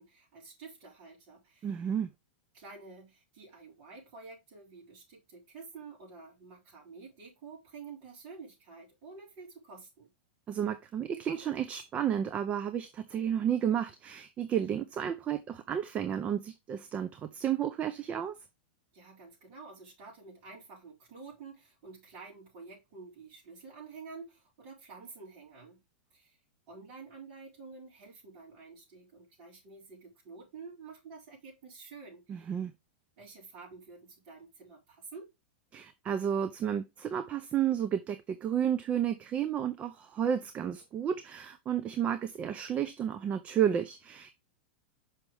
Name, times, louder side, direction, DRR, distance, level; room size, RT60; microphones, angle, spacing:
voice 1, 0.0-1.7 2.5-10.1 18.9-25.8 26.1-26.4 26.7-32.5 33.2-35.3, right 4 dB, 45° right, 4.4 m, -49 dB
voice 2, 1.6-2.1 10.5-18.4 32.3-32.7 35.7-44.3, right 9 dB, 25° right, 0.6 m, -32 dB
6.0 x 5.7 x 3.4 m
supercardioid pair, 145°, 6 cm